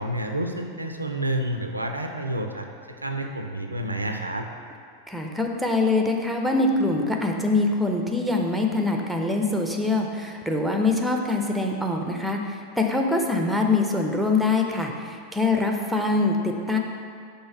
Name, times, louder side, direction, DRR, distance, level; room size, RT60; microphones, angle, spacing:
voice 1, 0.0-4.5, right 1 dB, 85° right, 4 dB, 0.4 m, -29 dB
voice 2, 5.1-16.8, left 3 dB, ahead, 2 dB, 0.6 m, -24 dB
5.5 x 3.5 x 5.6 m, 2.2 s
figure-of-eight pair, 90°, 0 cm